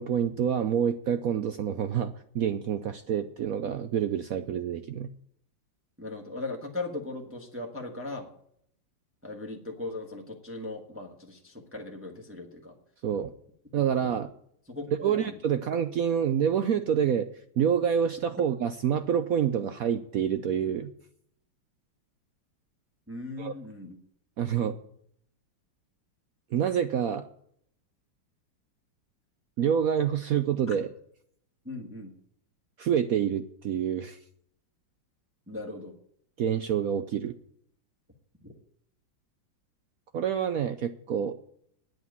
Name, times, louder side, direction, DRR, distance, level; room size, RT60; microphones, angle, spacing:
voice 1, 0.0-5.1 13.0-13.3 13.7-14.3 15.0-17.3 17.6-20.9 23.4-23.5 24.4-24.8 26.5-27.2 29.6-30.9 32.8-34.2 36.4-37.4 40.1-41.3, right 8 dB, 70° right, 10 dB, 0.8 m, -27 dB
voice 2, 6.0-8.3 9.2-12.8 13.7-13.8 14.7-15.6 23.1-24.0 30.7-30.8 31.6-32.1 35.5-35.9 38.4-38.5, left 2 dB, 5° right, 1 dB, 1.4 m, -38 dB
9.2 x 7.9 x 9.4 m, 0.67 s
omnidirectional pair, 2.1 m